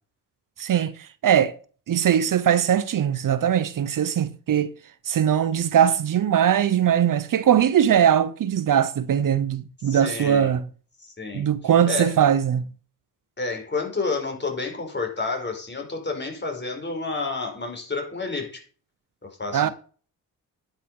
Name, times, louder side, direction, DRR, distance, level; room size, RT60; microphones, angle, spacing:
voice 1, 0.6-1.5 1.9-4.7 5.1-10.7 11.3-12.6 19.5-19.7, right 9 dB, 60° right, 0.8 m, -21 dB
voice 2, 9.8-10.5 11.0-11.5 11.9-12.1 13.4-18.6 19.2-19.7, left 3 dB, 30° left, 4.7 m, -30 dB
10.0 x 6.4 x 5.5 m
supercardioid pair, 60°, 37 cm